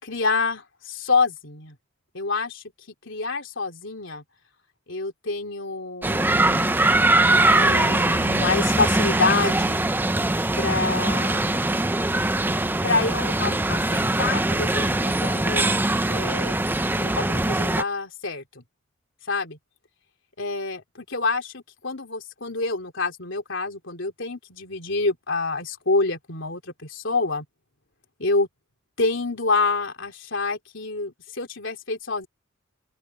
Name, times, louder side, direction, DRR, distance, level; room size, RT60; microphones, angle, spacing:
voice 1, 0.0-1.7 2.1-2.6 3.0-4.2 4.9-6.7 7.5-9.8 10.6-11.6 12.8-15.6 16.1-16.6 16.9-18.6 19.3-19.6 20.4-27.4 28.2-28.5 29.0-32.3, left 3 dB, 70° left, 3.4 m, -27 dB
sound 1, 6.0-17.8, right 2 dB, 10° right, 0.6 m, -22 dB
open air
head